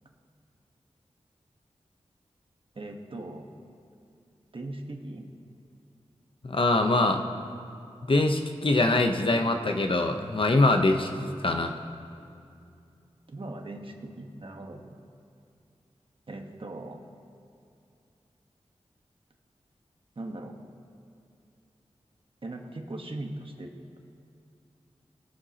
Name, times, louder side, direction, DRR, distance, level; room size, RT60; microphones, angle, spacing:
voice 1, 2.7-3.5 4.5-5.3 13.3-14.8 16.3-17.0 20.2-20.6 22.4-23.7, right 2 dB, 50° right, 3 dB, 1.3 m, -39 dB
voice 2, 6.4-7.2 8.1-11.7, left 2 dB, 50° left, 5 dB, 0.8 m, -23 dB
21.0 x 7.6 x 2.9 m, 2.6 s
wide cardioid pair, 55°, 11 cm